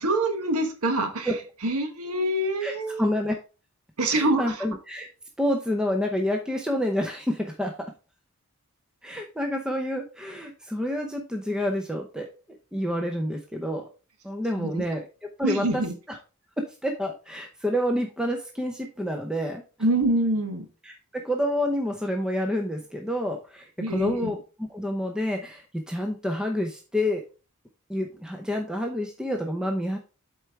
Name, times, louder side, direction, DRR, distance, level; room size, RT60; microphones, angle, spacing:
voice 1, 0.0-1.3 1.6-3.1 4.0-4.6 14.6-14.8 15.4-15.9 19.8-20.7 23.8-24.3, right 1 dB, 85° right, 6 dB, 1.2 m, -25 dB
voice 2, 2.6-3.4 4.1-5.1 5.4-7.7 9.0-12.3 12.7-13.9 14.2-15.1 15.4-15.8 16.1-16.2 16.6-19.6 20.8-27.2 27.9-30.0, equal, 5° right, 2 dB, 0.7 m, -28 dB
7.9 x 4.5 x 3.5 m, 0.33 s
head